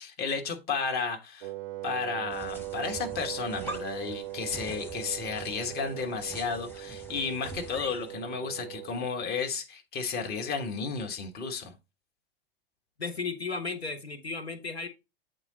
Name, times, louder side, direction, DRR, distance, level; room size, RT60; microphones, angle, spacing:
voice 1, 0.0-1.5 1.8-11.7, left 5 dB, 30° left, 1.3 m, -33 dB
Wind instrument woodwind instrument, 1.4-9.0, right 17 dB, 55° right, 0.4 m, -40 dB
sound 1, 2.3-8.1, right 1 dB, 5° left, 1.3 m, -45 dB
voice 2, 13.0-14.9, left 4 dB, 85° left, 1.0 m, -34 dB
8.1 x 3.9 x 3.8 m
figure-of-eight pair, 90°, 31 cm